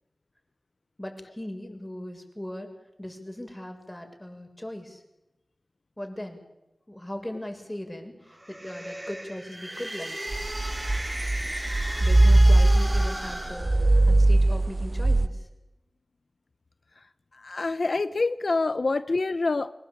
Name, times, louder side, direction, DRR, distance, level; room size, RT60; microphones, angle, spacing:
voice 1, 1.0-2.7 3.0-5.0 6.0-6.4 6.9-10.3 12.0-15.5, left 1 dB, 15° left, 4 dB, 7.2 m, -39 dB
sound 1, 8.3-14.4, right 1 dB, 25° right, 6.3 m, -36 dB
sound 2, 10.3-15.3, right 2 dB, 45° right, 1.0 m, -20 dB
voice 2, 17.4-19.7, left 3 dB, 75° left, 13 dB, 0.9 m, -26 dB
25.0 x 21.0 x 8.8 m, 0.94 s
wide cardioid pair, 45°, 0 cm